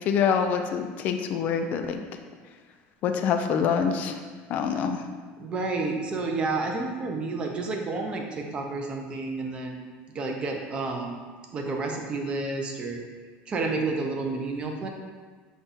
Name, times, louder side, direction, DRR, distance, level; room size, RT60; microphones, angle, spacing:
voice 1, 0.1-2.0 3.0-4.2 4.5-5.0, left 7 dB, 40° left, 6 dB, 0.3 m, -25 dB
voice 2, 5.4-9.8 10.1-11.2 11.5-13.0 13.5-14.9, right 3 dB, 25° right, 2 dB, 0.5 m, -30 dB
5.1 x 2.3 x 4.0 m, 1.5 s
cardioid pair, 165°, 4 cm